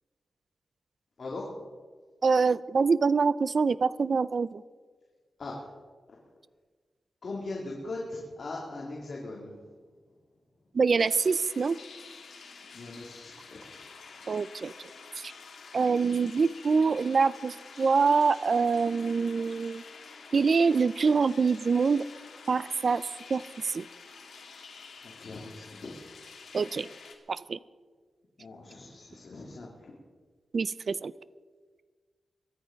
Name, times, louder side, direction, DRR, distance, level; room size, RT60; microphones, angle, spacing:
voice 1, 2.2-4.6 10.7-11.8 14.3-14.7 15.2-15.3 15.7-19.8 20.3-22.1 22.5-23.9 26.5-26.9 27.3-27.6 30.5-31.1, right 5 dB, 45° right, 17 dB, 0.4 m, -25 dB
voice 2, 7.2-9.7 12.7-13.7 25.0-26.0 28.4-29.9, left 2 dB, 50° left, -3 dB, 2.7 m, -40 dB
sound 1, 11.0-27.2, left 5 dB, 80° left, 2.3 m, -49 dB
23.0 x 9.9 x 5.2 m, 1.5 s
wide cardioid pair, 175°, 0 cm